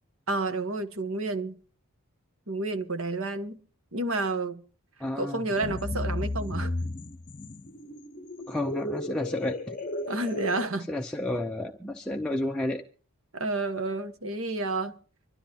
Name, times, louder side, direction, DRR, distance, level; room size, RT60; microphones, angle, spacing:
voice 1, 0.3-1.6 2.5-3.6 3.9-4.6 5.1-6.7 10.1-10.9 13.3-15.0, right 2 dB, 65° right, 1.3 m, -30 dB
voice 2, 5.0-5.4 8.5-9.8 10.9-12.8, left 1 dB, 5° left, 0.6 m, -31 dB
sound 1, 5.6-10.7, left 1 dB, 35° left, 0.9 m, -34 dB
25.0 x 12.5 x 2.9 m
head